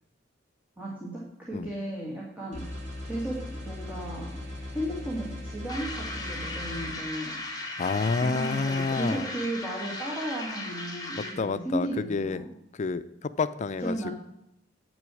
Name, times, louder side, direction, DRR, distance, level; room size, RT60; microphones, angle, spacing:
voice 1, 0.8-2.7 3.0-4.4 4.7-7.4 8.2-12.5 13.8-14.1, right 1 dB, 10° right, -5 dB, 1.9 m, -34 dB
sound 1, 2.5-6.9, left 1 dB, 40° right, 4.1 m, -38 dB
sound 2, 5.7-11.5, left 2 dB, 20° left, 1.5 m, -37 dB
voice 2, 7.8-9.3 11.2-12.4 12.7-14.1, left 4 dB, 40° left, 14 dB, 0.4 m, -29 dB
8.4 x 6.2 x 6.2 m, 0.82 s
head